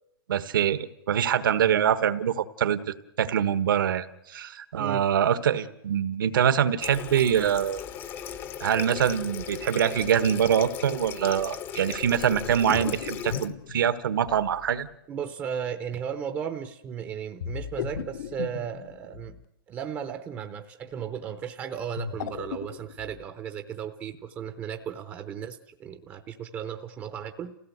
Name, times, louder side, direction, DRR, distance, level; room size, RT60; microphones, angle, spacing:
voice 1, 0.3-7.8 8.6-14.9, right 9 dB, 70° right, 13 dB, 1.4 m, -24 dB
voice 2, 4.8-5.1 15.1-19.4 19.7-27.5, right 8 dB, 15° right, 8 dB, 0.7 m, -35 dB
Water tap faucet, 6.8-13.5, left 9 dB, 20° left, 0.8 m, -37 dB
sound 1, 11.9-14.8 17.4-19.4 21.8-23.2, left 8 dB, 55° left, 1.0 m, -37 dB
28.5 x 16.5 x 8.0 m, 0.90 s
hypercardioid pair, 160°, 12 cm